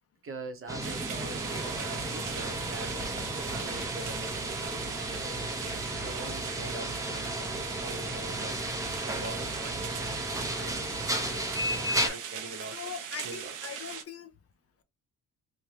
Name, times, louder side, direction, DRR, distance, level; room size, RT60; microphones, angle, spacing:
voice 1, 0.2-5.6 6.0-8.7 9.0-10.3 10.5-12.8 13.2-13.5, right 3 dB, 40° right, 0.9 m, -44 dB
sound 1, 0.7-12.1, right 1 dB, 10° right, 0.7 m, -34 dB
sound 2, 0.8-14.0, right 8 dB, 70° right, 0.6 m, -40 dB
voice 2, 12.7-14.3, left 7 dB, 45° left, 0.6 m, -41 dB
2.7 x 2.2 x 3.2 m
cardioid pair, 90°, 33 cm